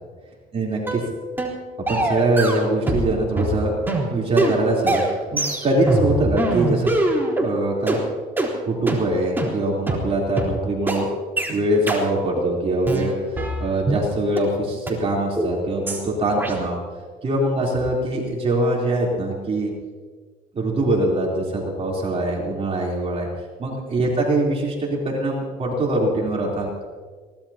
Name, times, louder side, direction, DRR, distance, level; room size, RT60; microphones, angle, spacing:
voice 1, 0.5-1.0 1.9-3.7 4.1-6.9 7.4-8.0 8.6-11.1 11.5-16.8 17.2-19.7 20.5-23.3 23.6-26.8, right 1 dB, 35° right, -3 dB, 3.7 m, -23 dB
sound 1, 0.9-1.0 1.4-1.6 1.9-3.1 3.4-7.5 7.9-8.0 8.4-8.5 8.9-9.0 9.4-9.5 9.9-10.0 10.4-10.5 10.9-11.0 11.4-11.5 11.9-12.0 12.4-12.5 12.9-14.0 14.4-14.5 14.9-15.0 15.4-15.5 15.9-16.0 16.4-16.5, right 2 dB, 10° right, 4.0 m, -23 dB
23.0 x 18.5 x 2.9 m, 1.5 s
cardioid pair, 110°, 17 cm